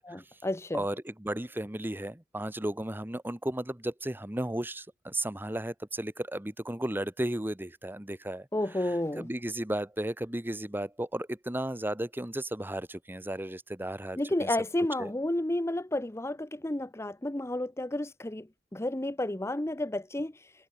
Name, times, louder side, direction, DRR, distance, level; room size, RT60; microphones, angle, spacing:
voice 1, 0.0-0.8 8.5-9.3 14.2-18.5 18.7-20.5, left 1 dB, 15° left, 0.8 m, -31 dB
voice 2, 0.7-8.5 9.2-14.5 15.0-15.1, right 1 dB, 10° right, 1.2 m, -34 dB
head